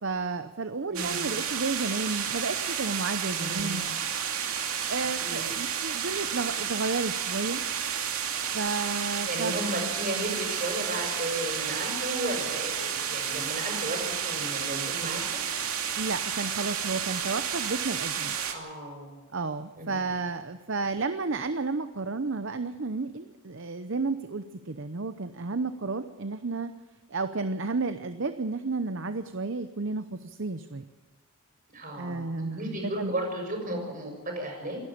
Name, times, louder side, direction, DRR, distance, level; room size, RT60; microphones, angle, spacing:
voice 1, 0.0-3.9 4.9-7.6 8.5-9.5 16.0-18.4 19.3-26.7 27.1-30.8 32.0-33.2, right 3 dB, 55° right, 10 dB, 0.8 m, -32 dB
voice 2, 0.9-1.4 3.3-3.9 5.2-5.4 9.3-15.4 18.5-19.1 19.8-20.0 31.7-34.8, right 1 dB, 40° right, 2 dB, 6.7 m, -34 dB
sound 1, 0.9-18.5, right 8 dB, 75° right, 2.6 m, -31 dB
27.0 x 12.0 x 8.6 m, 1.3 s
head